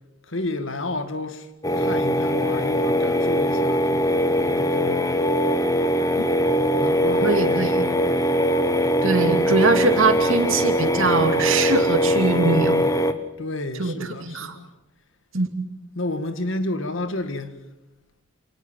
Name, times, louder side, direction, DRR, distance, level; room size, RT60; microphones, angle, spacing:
voice 1, 0.3-1.5 1.8-5.2 6.7-8.2 13.4-14.7 16.0-17.5, left 2 dB, 70° left, 1.9 m, -31 dB
sound 1, 1.6-13.1, equal, 15° left, 1.1 m, -21 dB
voice 2, 7.2-7.8 9.0-12.8 13.8-14.6 15.3-15.5, right 3 dB, 75° right, 2.6 m, -22 dB
27.5 x 19.0 x 7.5 m
head